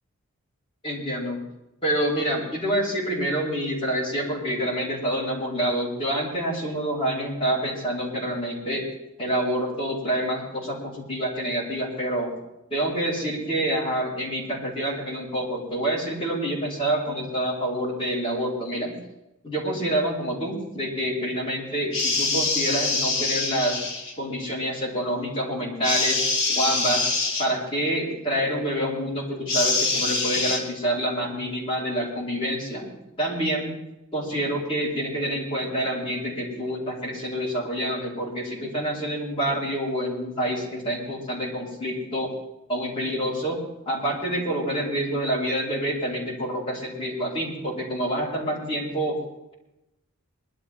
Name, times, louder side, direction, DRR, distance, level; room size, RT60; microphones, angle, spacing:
voice 1, 0.8-1.4 1.8-8.8 9.2-12.3 12.7-18.9 19.4-23.8 24.2-27.1 27.4-33.7 34.1-42.3 42.7-43.6 43.9-49.2, right 1 dB, 25° left, -6 dB, 4.8 m, -27 dB
sound 1, 21.9-24.1 25.8-27.5 29.5-30.6, left 3 dB, 55° left, 2.7 m, -24 dB
21.5 x 12.0 x 3.8 m, 0.92 s
head